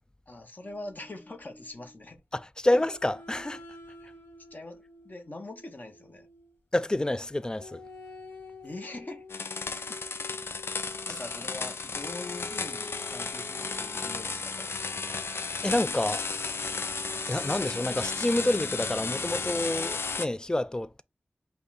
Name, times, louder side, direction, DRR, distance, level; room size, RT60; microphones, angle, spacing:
voice 1, 0.3-2.2 2.7-2.8 4.0-4.1 4.5-6.3 8.6-9.2 9.7-10.0 11.1-14.8, left 2 dB, 45° left, 1.1 m, -43 dB
sound 1, 0.6-2.1 2.7-6.6 7.6-11.3 12.0-13.9, left 2 dB, 60° left, 1.9 m, -49 dB
voice 2, 2.3-3.6 6.7-7.8 15.6-16.3 17.3-21.0, left 1 dB, 20° left, 0.3 m, -28 dB
sound 2, 9.3-20.3, left 4 dB, 85° left, 0.5 m, -34 dB
5.4 x 2.3 x 4.1 m
wide cardioid pair, 80°, 4 cm